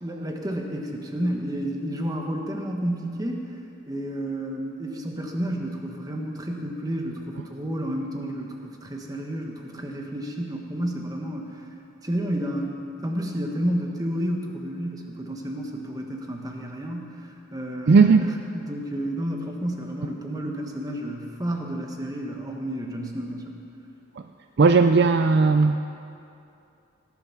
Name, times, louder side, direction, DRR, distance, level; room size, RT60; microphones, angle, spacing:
voice 1, 0.0-3.5 3.9-11.7 12.0-23.6, equal, 15° right, 1 dB, 1.3 m, -31 dB
voice 2, 17.9-18.2 24.6-25.8, right 4 dB, 50° right, 8 dB, 0.4 m, -16 dB
17.5 x 10.0 x 6.0 m, 2.6 s
head